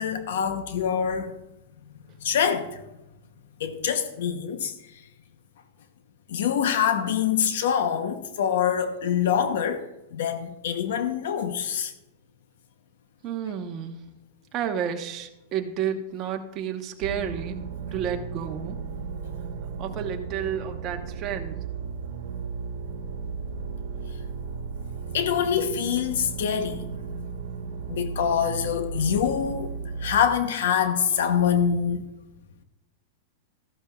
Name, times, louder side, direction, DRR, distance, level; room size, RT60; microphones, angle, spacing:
voice 1, 0.0-1.4 2.2-2.8 3.6-4.7 6.3-11.9 25.1-26.9 27.9-29.7 30.0-32.0, left 8 dB, 75° left, 0.8 m, -25 dB
voice 2, 13.2-14.0 14.5-17.6 17.9-18.8 19.8-21.6, right 8 dB, 30° right, 1.0 m, -31 dB
sound 1, 17.0-30.3, right 5 dB, 75° right, 1.2 m, -35 dB
14.0 x 11.5 x 2.4 m
supercardioid pair, 155°, 0 cm